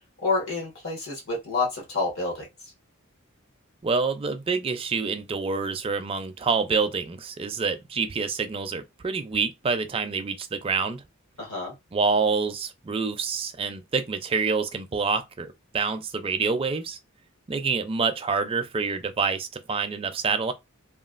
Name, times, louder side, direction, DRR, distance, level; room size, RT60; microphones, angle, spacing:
voice 1, 0.2-2.7 11.4-11.7, left 3 dB, 70° left, 1.4 m, -28 dB
voice 2, 3.8-11.0 11.9-17.0 17.5-20.5, right 4 dB, 25° right, 0.4 m, -27 dB
3.1 x 2.3 x 2.4 m
head